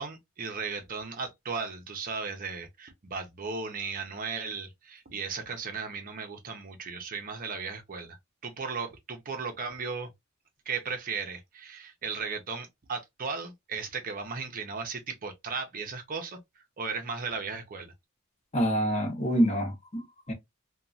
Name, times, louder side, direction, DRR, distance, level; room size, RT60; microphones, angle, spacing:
voice 1, 0.0-8.2 8.4-10.1 10.7-16.4 16.8-17.9, right 5 dB, 40° right, 0.6 m, -36 dB
voice 2, 18.5-20.3, equal, 30° left, 0.9 m, -27 dB
3.0 x 2.2 x 2.5 m
head